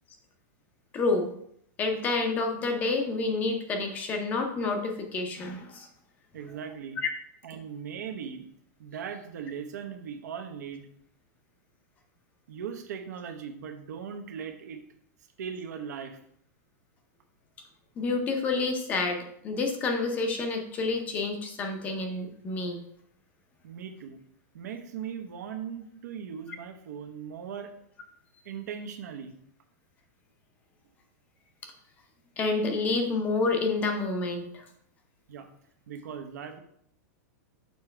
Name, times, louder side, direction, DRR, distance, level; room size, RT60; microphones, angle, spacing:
voice 1, 0.9-1.3 1.8-5.9 18.0-22.8 32.4-34.6, left 3 dB, 15° left, 4 dB, 0.6 m, -29 dB
voice 2, 6.3-7.0 7.4-8.5 8.8-10.9 12.5-14.8 15.4-16.2 23.6-24.2 24.5-27.7 28.4-29.3 35.3-35.5 35.9-36.6, right 7 dB, 75° right, 6 dB, 1.0 m, -39 dB
6.8 x 4.8 x 3.3 m, 0.69 s
supercardioid pair, 175°, 9 cm